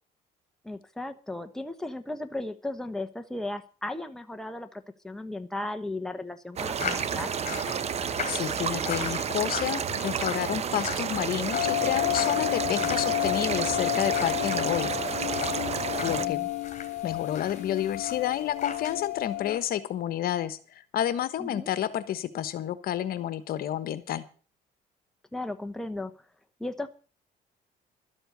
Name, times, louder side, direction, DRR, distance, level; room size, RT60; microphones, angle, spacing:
voice 1, 0.6-7.3 12.7-13.0 16.1-16.5 21.4-21.7 25.3-26.1 26.6-26.9, left 2 dB, 5° left, 6 dB, 1.1 m, -36 dB
sound 1, 6.6-16.3, right 7 dB, 40° right, 0.9 m, -31 dB
sound 2, 6.8-19.0 19.3-19.6, left 6 dB, 45° left, 3.7 m, -40 dB
voice 2, 8.3-15.1 16.0-16.4 17.0-24.2, left 11 dB, 65° left, 14 dB, 1.3 m, -30 dB
sound 3, 11.5-19.6, left 17 dB, 85° left, 0.8 m, -31 dB
12.5 x 7.9 x 8.1 m, 0.39 s
cardioid pair, 110°, 17 cm